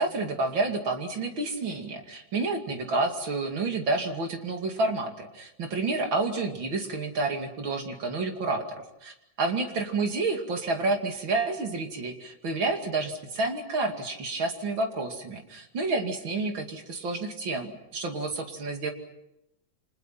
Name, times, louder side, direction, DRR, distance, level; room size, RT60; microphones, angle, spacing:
voice 1, 0.0-18.9, right 3 dB, 85° right, 4 dB, 3.3 m, -29 dB
30.0 x 25.5 x 5.9 m, 0.85 s
omnidirectional pair, 2.1 m